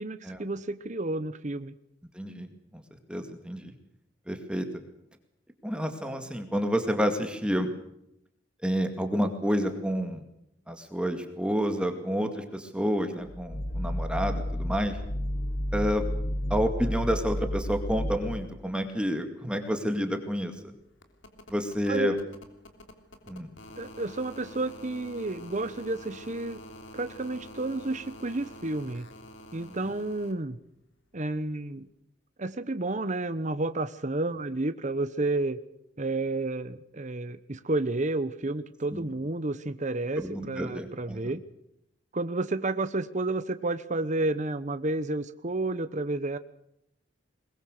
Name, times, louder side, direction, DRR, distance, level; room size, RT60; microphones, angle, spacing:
voice 1, 0.0-1.7 21.9-22.2 23.8-26.6 26.9-29.1 29.5-30.6 31.1-31.9 32.4-35.6 36.0-41.4 42.1-46.4, right 2 dB, 40° right, 12 dB, 0.9 m, -31 dB
voice 2, 2.1-2.8 3.1-3.7 4.3-4.7 5.6-7.7 8.6-10.2 10.7-15.0 15.7-16.0 16.5-20.5 21.5-22.1 23.3-23.5 29.6-29.9 38.9-39.0 40.2-41.3, equal, 5° right, 6 dB, 2.2 m, -29 dB
sound 1, 13.2-18.7, left 1 dB, 45° left, 1.2 m, -31 dB
sound 2, 19.4-30.3 31.8-31.9, left 1 dB, 85° left, 3.3 m, -48 dB
22.5 x 21.0 x 6.6 m, 0.79 s
head